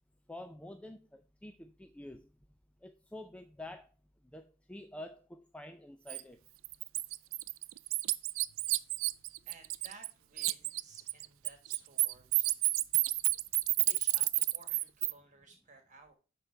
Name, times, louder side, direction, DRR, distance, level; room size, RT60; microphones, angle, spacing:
voice 1, 0.3-2.3 2.8-3.9 4.3-6.4, left 1 dB, 5° left, 6 dB, 0.4 m, -48 dB
Bird, 6.1-6.2 6.6-10.1 10.4-15.1, right 20 dB, 75° right, 0.3 m, -30 dB
voice 2, 9.4-12.5 13.8-16.1, right 3 dB, 40° right, 5 dB, 1.4 m, -57 dB
9.8 x 3.8 x 4.5 m, 0.33 s
head